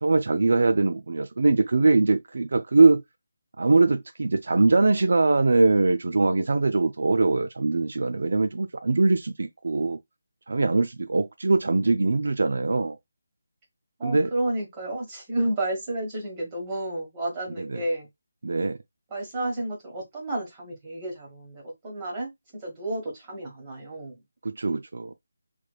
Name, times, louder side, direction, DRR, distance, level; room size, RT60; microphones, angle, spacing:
voice 1, 0.0-3.0 3.6-10.0 10.5-13.0 14.0-14.3 17.7-17.8 18.4-18.8 24.4-25.1, right 3 dB, 60° right, 0.4 m, -22 dB
voice 2, 14.0-18.1 19.1-24.2, right 1 dB, 15° right, 1.4 m, -31 dB
3.3 x 3.2 x 2.3 m
figure-of-eight pair, 175°, 0 cm